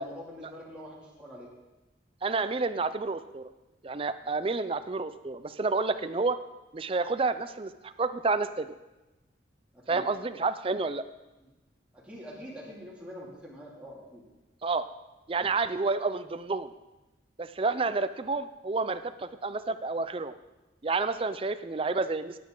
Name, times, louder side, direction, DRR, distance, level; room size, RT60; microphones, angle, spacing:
voice 1, 0.0-1.5 9.7-10.0 11.9-14.2 15.4-15.5, equal, 5° right, -5 dB, 2.6 m, -45 dB
voice 2, 2.2-3.5 3.8-6.4 6.7-8.8 9.9-11.1 14.6-14.9 15.3-16.7 17.4-20.3 20.8-22.3, right 3 dB, 30° right, 12 dB, 0.5 m, -30 dB
16.5 x 8.6 x 3.9 m, 1.0 s
head